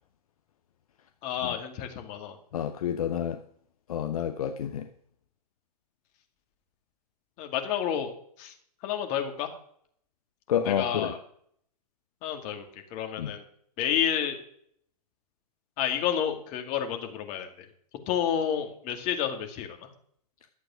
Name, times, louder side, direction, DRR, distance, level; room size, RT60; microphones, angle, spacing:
voice 1, 1.2-2.4 7.4-8.1 8.4-8.5 8.8-9.5 10.6-11.2 12.2-12.7 12.9-13.4 13.8-14.4 15.8-17.7 18.1-19.9, left 9 dB, 35° left, 5 dB, 2.3 m, -30 dB
voice 2, 2.5-3.4 3.9-4.9 10.5-11.1 13.2-13.3, left 9 dB, 65° left, 7 dB, 1.0 m, -29 dB
12.0 x 7.8 x 6.2 m, 0.65 s
hypercardioid pair, 115°, 20 cm